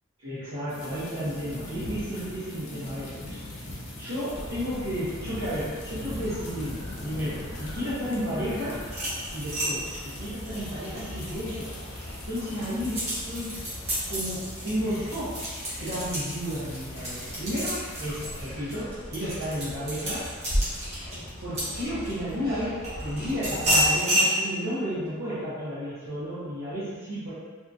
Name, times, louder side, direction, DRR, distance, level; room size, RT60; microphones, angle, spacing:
voice 1, 0.2-3.4 4.0-8.9 9.3-11.8 12.3-13.7 14.1-15.5 15.8-20.3 20.6-20.9 21.4-27.3, equal, 80° right, -14 dB, 0.9 m, -32 dB
sound 1, 0.7-18.4, left 1 dB, 70° left, 0.6 m, -42 dB
sound 2, 4.3-24.0, equal, 35° left, 1.2 m, -39 dB
sound 3, 8.9-11.7 12.1-22.3 22.8-24.3, equal, 30° right, 0.8 m, -30 dB
2.7 x 2.3 x 2.5 m, 1.4 s
head